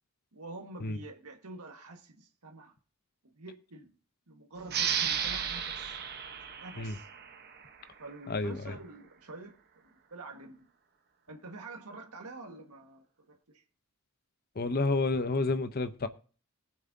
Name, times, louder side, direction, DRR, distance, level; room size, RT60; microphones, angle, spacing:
voice 1, 0.3-2.7 3.3-3.9 4.3-6.0 6.6-7.1 8.0-9.6 10.1-10.7 11.3-13.6, right 2 dB, 90° right, 1.7 m, -47 dB
sound 1, 4.7-7.9, right 8 dB, 45° right, 1.0 m, -34 dB
voice 2, 8.3-8.8 14.6-16.1, left 3 dB, 45° left, 0.7 m, -30 dB
21.5 x 7.4 x 2.7 m
head